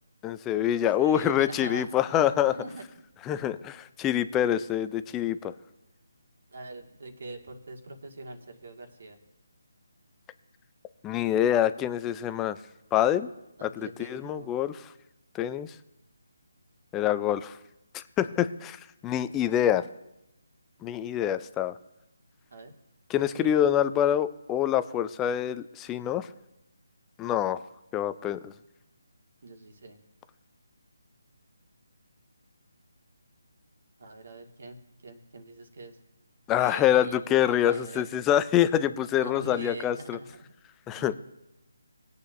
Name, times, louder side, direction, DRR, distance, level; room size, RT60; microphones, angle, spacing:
voice 1, 0.2-2.6 3.3-5.5 11.0-12.6 12.9-13.3 13.6-14.9 15.3-15.8 16.9-17.6 17.9-19.9 20.8-21.7 23.1-26.3 27.2-27.6 27.9-28.5 36.5-40.2 40.9-41.1, left 11 dB, 15° left, 13 dB, 0.5 m, -26 dB
voice 2, 1.0-2.8 3.3-3.4 6.5-9.2 13.6-14.5 19.2-19.7 22.5-22.7 23.4-23.5 29.4-30.0 34.0-36.0 36.5-38.1 39.2-40.5 40.9-41.1, right 2 dB, 60° right, 3 dB, 2.0 m, -44 dB
20.0 x 8.2 x 2.6 m, 0.94 s
figure-of-eight pair, 155°, 0 cm